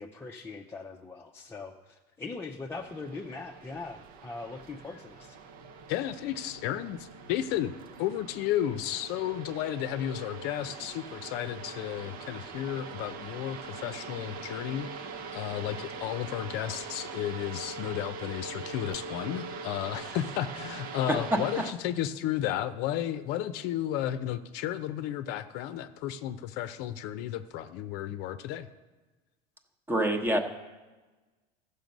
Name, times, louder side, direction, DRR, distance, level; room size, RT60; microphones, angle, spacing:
voice 1, 0.0-5.4, left 3 dB, 15° left, -1 dB, 0.6 m, -41 dB
sound 1, 2.7-21.7, right 4 dB, 50° right, 0.8 m, -42 dB
voice 2, 5.9-28.7, left 11 dB, 60° left, 11 dB, 0.6 m, -33 dB
voice 3, 29.9-30.4, right 1 dB, 10° right, 6 dB, 1.0 m, -26 dB
14.5 x 6.8 x 5.3 m, 1.2 s
supercardioid pair, 135°, 19 cm